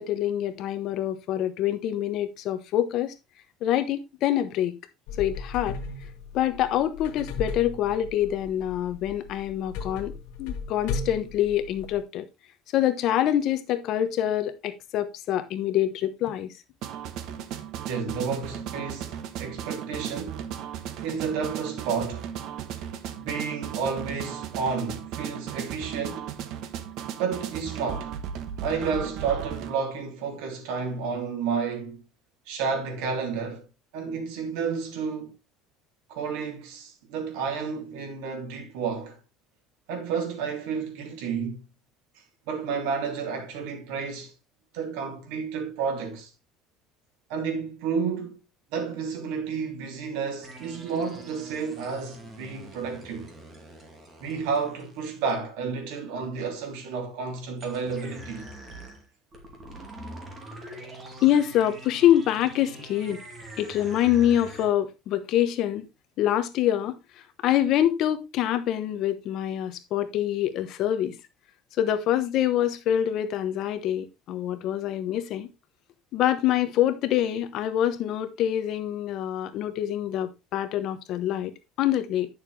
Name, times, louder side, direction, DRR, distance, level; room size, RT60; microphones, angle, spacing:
voice 1, 0.0-3.1 3.6-4.8 5.2-5.8 6.3-10.1 10.4-12.2 12.7-16.5 61.2-63.2 63.6-65.9 66.2-67.0 67.4-71.2 71.8-75.5 76.1-82.3, left 11 dB, 45° left, 1.0 m, -25 dB
sound 1, 5.1-12.0, left 4 dB, 80° left, 1.6 m, -36 dB
sound 2, 16.8-29.7, right 9 dB, 55° right, 1.1 m, -36 dB
voice 2, 17.8-20.4 21.0-22.3 23.2-26.3 27.2-28.2 28.6-32.0 32.5-33.7 33.9-35.3 36.1-39.2 39.9-41.6 42.5-44.3 44.7-46.3 47.3-48.4 48.7-53.3 54.2-58.5, right 5 dB, 85° right, 3.0 m, -31 dB
sound 3, 50.4-55.3 57.6-64.6, right 1 dB, 25° right, 2.3 m, -44 dB
10.5 x 6.6 x 3.3 m
cardioid pair, 165°, 0 cm